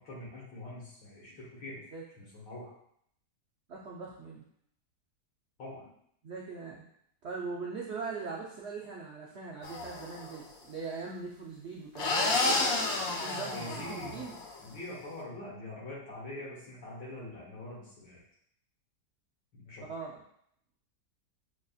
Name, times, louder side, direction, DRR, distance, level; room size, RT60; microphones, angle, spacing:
voice 1, 0.0-1.8 2.2-2.7 5.6-5.9 13.5-14.3 14.6-18.2 19.5-19.8, left 1 dB, 85° left, -6 dB, 2.2 m, -44 dB
voice 2, 3.7-4.5 6.2-6.9 7.2-12.7 13.2-14.4 19.9-20.2, right 4 dB, 75° right, -4 dB, 0.6 m, -41 dB
sound 1, 9.6-10.4 12.0-14.6, left 2 dB, 65° left, 0.9 m, -31 dB
6.1 x 2.5 x 2.3 m, 0.69 s
omnidirectional pair, 1.8 m